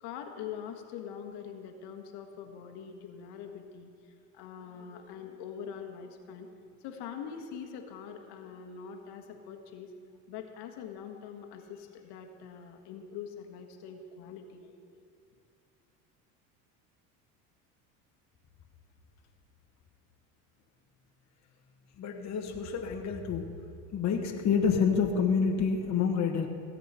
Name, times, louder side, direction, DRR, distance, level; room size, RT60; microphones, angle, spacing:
voice 1, 0.0-3.9 4.3-6.5 6.8-9.9 10.3-14.8, left 7 dB, 65° left, 5 dB, 1.5 m, -43 dB
voice 2, 22.0-23.5 23.9-26.5, left 6 dB, 40° left, 2 dB, 1.3 m, -28 dB
16.5 x 7.7 x 5.7 m, 2.3 s
supercardioid pair, 90°, 43 cm